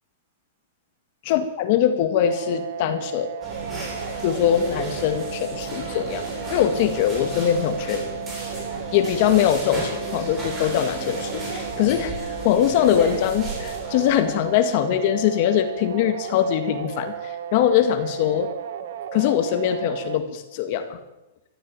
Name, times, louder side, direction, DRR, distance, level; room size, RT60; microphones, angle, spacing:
voice 1, 1.3-3.3 4.2-6.2 6.5-8.0 8.9-18.5 19.1-21.0, left 10 dB, 45° left, 7 dB, 2.0 m, -22 dB
sound 1, 2.2-20.2, right 9 dB, 60° right, 1.6 m, -34 dB
sound 2, 3.4-14.5, right 1 dB, 15° right, 7.2 m, -34 dB
14.5 x 10.5 x 9.1 m, 0.96 s
supercardioid pair, 165°, 0 cm